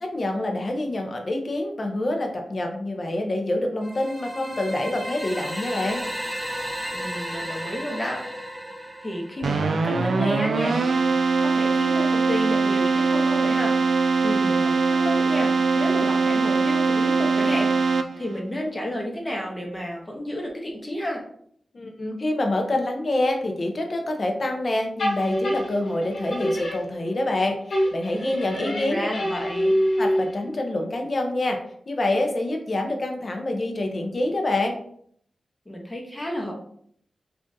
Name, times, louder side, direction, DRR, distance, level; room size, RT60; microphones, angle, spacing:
voice 1, 0.0-6.1 21.7-29.1 30.0-31.6 31.9-34.8, left 1 dB, 45° left, 3 dB, 0.6 m, -26 dB
sound 1, 3.8-9.8, equal, 15° right, 0.9 m, -34 dB
voice 2, 6.9-8.2 9.0-10.8 11.4-14.0 14.2-17.7 18.2-21.2 28.5-29.7 35.7-36.5, left 1 dB, 20° left, -1 dB, 0.8 m, -31 dB
Keyboard (musical), 9.4-18.4, right 4 dB, 75° right, 0.3 m, -22 dB
sound 2, 25.0-27.4 27.7-30.5, equal, 70° left, 1.0 m, -26 dB
3.7 x 2.4 x 2.6 m, 0.64 s
wide cardioid pair, 80°, 0 cm